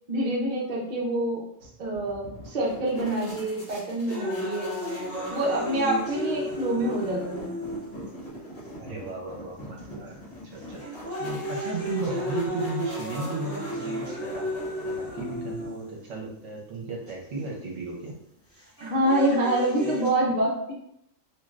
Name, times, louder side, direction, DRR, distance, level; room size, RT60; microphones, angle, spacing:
voice 1, 0.1-1.4 1.8-4.7 5.3-7.5 18.8-20.7, right 1 dB, 50° right, -3 dB, 0.6 m, -26 dB
sound 1, 1.6-16.0, equal, 40° left, 1.0 m, -44 dB
sound 2, 4.1-8.1 8.8-8.9 9.8-10.1 10.6-16.1 17.1-17.2 18.6-20.1, equal, 10° left, 0.8 m, -33 dB
voice 2, 8.8-10.1 10.4-14.5 14.8-18.2, right 3 dB, 65° right, -2 dB, 1.0 m, -35 dB
3.2 x 2.5 x 2.4 m, 0.76 s
omnidirectional pair, 1.4 m